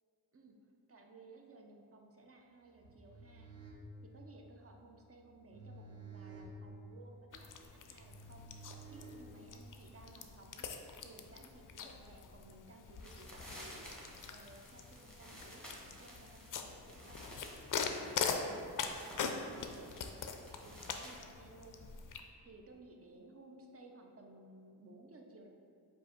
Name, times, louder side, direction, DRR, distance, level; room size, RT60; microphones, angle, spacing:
voice 1, 0.9-3.5 4.0-8.5 8.9-10.8 11.0-17.4 17.7-18.8 19.4-20.3 20.6-21.8 22.4-25.5, right 2 dB, 35° right, 2 dB, 0.6 m, -58 dB
sound 1, 2.8-9.7, right 3 dB, 75° right, 0.9 m, -53 dB
sound 2, 7.3-22.2, left 5 dB, 50° left, 0.4 m, -43 dB
sound 3, 12.9-21.2, equal, ahead, 1.3 m, -54 dB
4.7 x 2.5 x 4.3 m, 2.5 s
cardioid pair, 50°, 42 cm